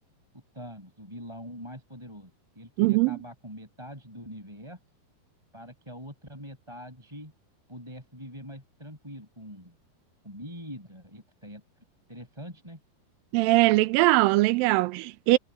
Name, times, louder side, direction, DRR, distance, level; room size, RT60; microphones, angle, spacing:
voice 1, 0.5-4.8 5.5-7.3 7.7-9.8 10.2-11.6 12.1-12.8, equal, 5° right, 5.5 m, -43 dB
voice 2, 2.8-3.2 13.3-15.4, right 20 dB, 85° right, 2.0 m, -21 dB
omnidirectional pair, 4.7 m